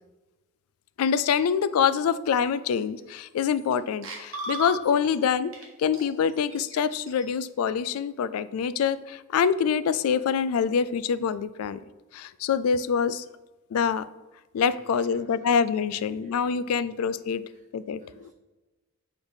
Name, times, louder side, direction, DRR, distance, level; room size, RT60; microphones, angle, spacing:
voice 1, 1.0-5.5 5.8-11.8 12.1-13.2 13.7-14.0 14.5-17.4 17.7-18.3, left 7 dB, 85° left, 15 dB, 0.3 m, -25 dB
sound 1, 2.7-2.8 3.2-3.7 4.0-5.1 5.5-5.7 5.9-7.3, right 2 dB, 60° right, 1.2 m, -37 dB
voice 2, 14.7-17.0 17.5-17.7 18.0-18.3, right 1 dB, 35° right, 1 dB, 0.7 m, -55 dB
6.9 x 3.4 x 4.0 m, 1.2 s
head